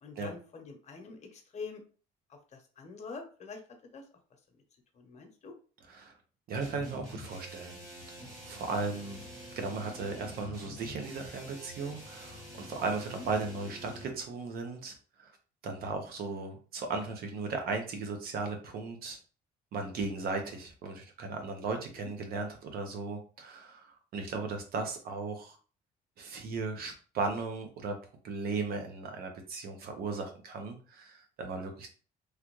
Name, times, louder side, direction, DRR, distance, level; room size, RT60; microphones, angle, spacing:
voice 1, 0.0-1.8 2.8-3.6 3.9-4.0 5.0-5.5 22.0-22.1, left 4 dB, 45° left, 3 dB, 0.9 m, -44 dB
voice 2, 6.5-7.8 8.5-9.2 9.6-14.9 15.2-15.3 15.6-19.2 19.7-25.6 26.2-27.9 28.2-31.9, right 4 dB, 65° right, 5 dB, 0.8 m, -36 dB
sound 1, 6.6-14.2, equal, 20° right, 1.7 m, -47 dB
3.2 x 2.4 x 3.0 m, 0.38 s
cardioid pair, 110°, 17 cm